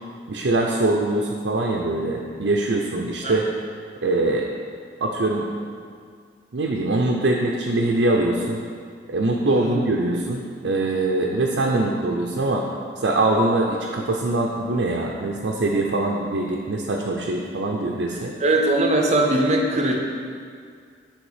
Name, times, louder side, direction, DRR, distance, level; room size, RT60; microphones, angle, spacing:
voice 1, 0.3-3.5 4.0-4.5 5.0-5.5 6.5-8.6 9.1-12.6 13.0-18.3, right 2 dB, 85° right, -1 dB, 0.5 m, -23 dB
voice 2, 9.5-9.8 18.4-20.0, right 2 dB, 40° right, 1 dB, 0.7 m, -20 dB
7.9 x 3.5 x 4.9 m, 2.2 s
head